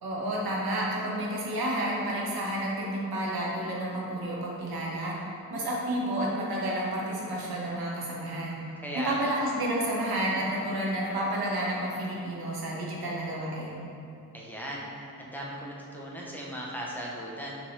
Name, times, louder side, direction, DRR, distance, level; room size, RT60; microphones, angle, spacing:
voice 1, 0.0-8.6 8.9-13.8, right 1 dB, 70° right, -4 dB, 1.4 m, -30 dB
voice 2, 8.8-9.3 14.3-14.9 15.2-17.6, equal, 5° left, -4 dB, 0.7 m, -37 dB
5.7 x 5.1 x 3.3 m, 2.8 s
wide cardioid pair, 160°, 38 cm